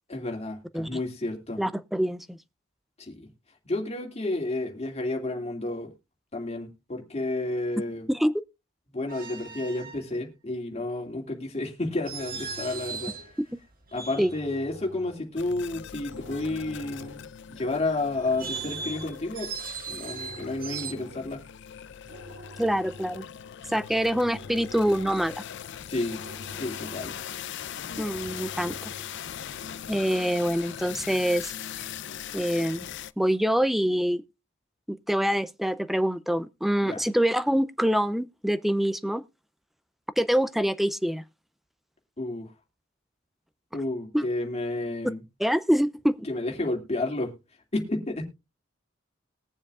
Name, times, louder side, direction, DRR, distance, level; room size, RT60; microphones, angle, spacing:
voice 1, 0.1-1.6 3.0-3.3 3.6-5.9 6.3-8.1 8.9-13.1 13.9-19.5 19.9-21.5 25.9-26.2 26.6-27.1 36.8-37.0 42.2-42.5 43.7-45.2 46.3-47.3 47.7-48.2, left 2 dB, 30° left, 2.4 m, -31 dB
voice 2, 1.6-2.4 8.1-8.3 14.2-14.3 22.6-23.2 23.7-25.4 28.0-28.9 29.9-31.5 32.3-32.9 33.2-34.2 34.9-39.2 40.2-41.2 44.1-44.2 45.4-46.3, equal, ahead, 0.4 m, -25 dB
sound 1, 9.1-10.0 12.1-13.3 13.9-14.6 18.2-20.9, right 6 dB, 45° right, 1.7 m, -38 dB
sound 2, 12.0-29.4, equal, 75° right, 2.8 m, -48 dB
sound 3, 15.4-33.1, left 9 dB, 60° left, 0.5 m, -40 dB
21.0 x 7.2 x 2.4 m
head